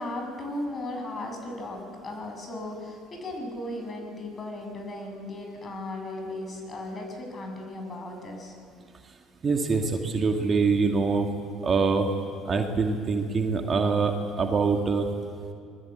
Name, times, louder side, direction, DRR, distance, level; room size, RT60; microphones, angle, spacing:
voice 1, 0.0-8.6, left 1 dB, 35° left, 3 dB, 7.6 m, -36 dB
voice 2, 9.4-11.3 11.6-12.1 12.4-15.1, right 4 dB, 35° right, 4 dB, 2.3 m, -24 dB
27.0 x 21.0 x 8.2 m, 2.3 s
figure-of-eight pair, 55°, 0 cm